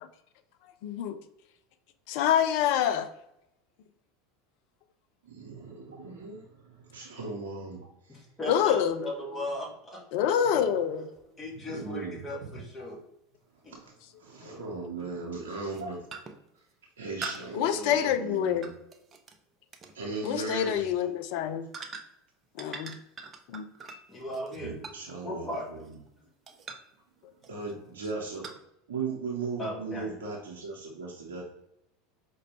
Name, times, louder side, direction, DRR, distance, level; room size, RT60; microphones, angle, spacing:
voice 1, 0.8-1.2 2.1-3.1 8.5-9.0 10.1-11.1 17.5-18.6 20.2-21.7 22.6-23.0 23.5-23.7, left 9 dB, 55° left, 10 dB, 0.3 m, -26 dB
voice 2, 5.2-8.2 10.2-10.3 11.5-12.5 13.6-13.9 14.3-16.0 17.0-18.7 19.9-21.0 24.6-26.0 27.5-28.5 28.9-31.4, right 4 dB, 75° right, -2 dB, 0.7 m, -38 dB
voice 3, 8.1-10.8 11.4-13.0 13.6-13.7 24.1-24.8 25.2-25.7 29.6-30.2, left 1 dB, 20° left, -1 dB, 1.2 m, -37 dB
sound 1, 11.2-11.3 13.7-13.8 15.0-15.2 15.6-15.8 16.1-16.5 17.2-19.4 19.7-20.0 20.6-20.8 21.7-22.3 22.6-26.1 26.5-27.0 27.4-27.7 28.4-28.6, right 4 dB, 30° right, 0.5 m, -43 dB
4.8 x 2.2 x 3.0 m, 0.82 s
figure-of-eight pair, 80°, 0 cm